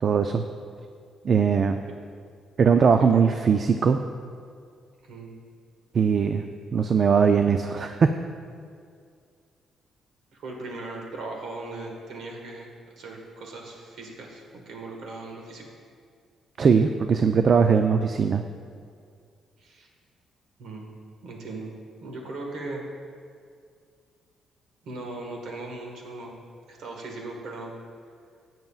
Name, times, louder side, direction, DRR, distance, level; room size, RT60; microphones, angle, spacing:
voice 1, 0.0-0.4 1.2-1.9 2.6-4.0 5.9-6.4 6.7-8.1 16.6-18.4, right 6 dB, 45° right, 7 dB, 0.4 m, -20 dB
voice 2, 5.0-5.4 10.3-12.7 12.9-15.7 19.6-19.9 20.6-20.9 21.2-21.7 22.0-22.8 24.8-26.4 26.7-27.7, right 2 dB, 70° right, 0 dB, 1.6 m, -38 dB
15.5 x 9.1 x 2.4 m, 2.2 s
cardioid pair, 105°, 0 cm